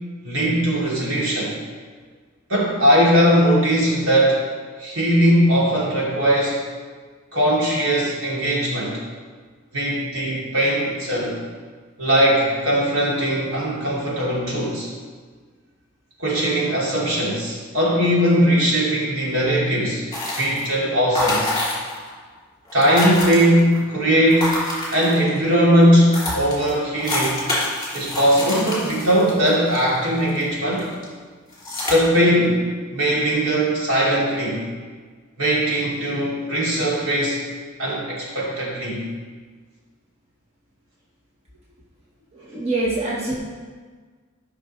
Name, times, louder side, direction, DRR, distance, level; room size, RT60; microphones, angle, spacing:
voice 1, 0.2-1.5 2.5-4.4 4.8-6.6 7.3-9.0 9.7-11.4 12.0-14.9 16.2-20.0 20.3-21.5 22.7-24.6 24.9-27.4 27.9-30.9 31.9-32.6 32.9-34.6 35.4-37.4 37.8-39.0, equal, 75° right, -6 dB, 2.8 m, -19 dB
sound 1, 20.1-20.7 21.1-22.1 22.3-22.4 22.6-23.8 24.3-25.4 25.8-25.9 26.1-30.4 30.8-31.0 31.5-31.9, left 1 dB, 20° left, 2.8 m, -27 dB
voice 2, 42.3-43.3, right 2 dB, 30° right, -5 dB, 1.2 m, -25 dB
13.5 x 6.0 x 3.2 m, 1.5 s
head